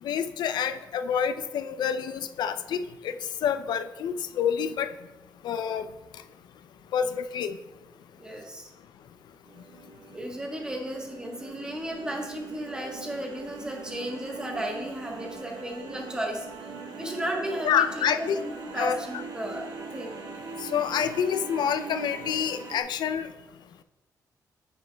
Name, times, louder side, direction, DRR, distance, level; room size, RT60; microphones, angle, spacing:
voice 1, 0.0-3.2 3.4-4.9 5.4-5.9 6.9-7.6 17.6-18.4 18.8-19.2 20.6-23.3, left 8 dB, 85° left, 10 dB, 0.4 m, -28 dB
voice 2, 8.2-8.7 10.1-16.7 17.0-20.1, right 1 dB, 10° right, 0 dB, 1.1 m, -34 dB
sound 1, 9.4-22.8, right 4 dB, 70° right, 1.2 m, -41 dB
9.6 x 7.8 x 2.2 m, 1.1 s
wide cardioid pair, 160°, 7 cm